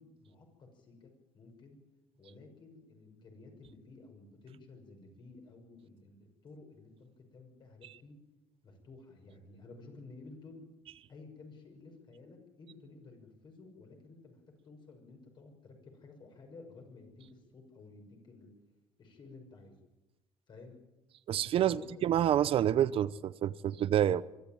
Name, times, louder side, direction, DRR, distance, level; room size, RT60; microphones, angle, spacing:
voice 1, 0.0-1.8 2.2-8.2 8.6-10.7 11.1-14.4 14.6-18.5 19.0-19.8 20.5-20.8 21.6-22.0, left 3 dB, 45° left, 6.3 m, -53 dB
voice 2, 21.3-24.2, right 11 dB, 55° right, 0.8 m, -28 dB
23.5 x 13.5 x 9.1 m
cardioid pair, 120°, 11 cm